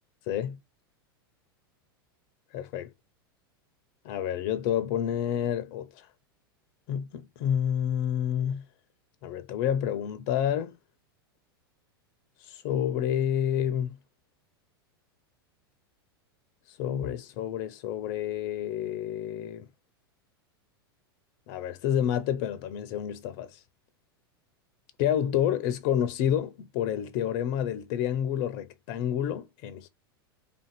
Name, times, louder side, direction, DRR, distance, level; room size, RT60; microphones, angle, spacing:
voice 1, 0.3-0.6 2.5-2.9 4.0-6.1 6.9-8.7 9.2-10.7 12.4-14.0 16.7-19.7 21.5-23.6 25.0-29.9, left 10 dB, 55° left, 0.5 m, -29 dB
3.4 x 2.6 x 4.2 m
hypercardioid pair, 100°, 13 cm